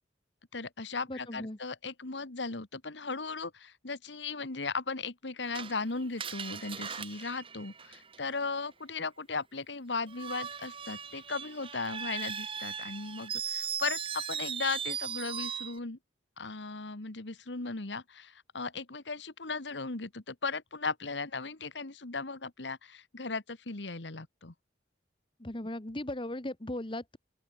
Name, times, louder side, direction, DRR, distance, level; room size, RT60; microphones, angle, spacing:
voice 1, 0.5-16.0 16.4-24.5, left 4 dB, 85° left, 1.7 m, -37 dB
voice 2, 1.1-1.6 25.4-27.2, left 1 dB, 30° left, 1.4 m, -37 dB
Screech, 5.5-8.4 10.1-15.8, right 7 dB, 30° right, 1.0 m, -38 dB
open air
head